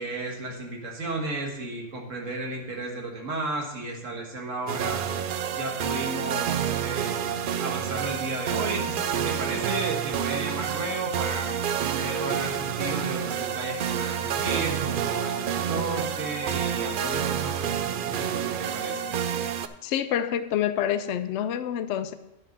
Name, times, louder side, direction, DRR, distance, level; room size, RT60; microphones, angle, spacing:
voice 1, 0.0-5.0 5.5-7.2 7.6-11.5 11.9-19.2, right 2 dB, 85° right, 0 dB, 1.9 m, -33 dB
sound 1, 4.7-19.7, right 8 dB, 60° right, 0.6 m, -29 dB
voice 2, 19.8-22.1, left 10 dB, 70° left, 11 dB, 0.8 m, -27 dB
9.9 x 6.4 x 5.3 m, 0.90 s
omnidirectional pair, 1.3 m